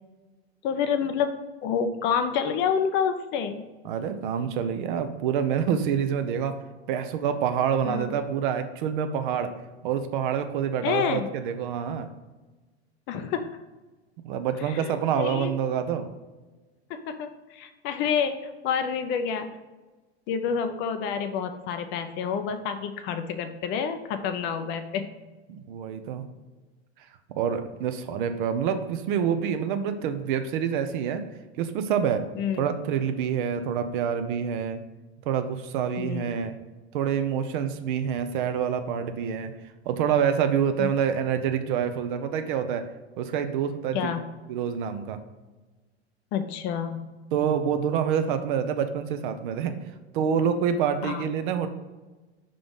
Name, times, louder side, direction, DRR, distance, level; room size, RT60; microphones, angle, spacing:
voice 1, 0.6-3.6 7.8-8.1 10.8-11.3 13.1-13.5 14.7-15.5 16.9-19.5 20.3-25.1 32.4-32.7 36.0-36.3 40.8-40.9 43.9-44.3 46.3-47.1 51.0-51.3, left 7 dB, 35° left, 9 dB, 0.5 m, -28 dB
voice 2, 3.8-6.5 6.9-9.5 9.8-12.1 14.2-16.1 25.5-26.2 27.3-31.3 31.6-32.2 32.6-34.8 35.3-36.5 36.9-39.5 39.9-42.9 43.2-44.1 44.5-45.2 47.3-49.7 50.1-51.7, right 8 dB, 50° right, 8 dB, 0.6 m, -27 dB
5.8 x 3.8 x 5.2 m, 1.2 s
figure-of-eight pair, 85°, 33 cm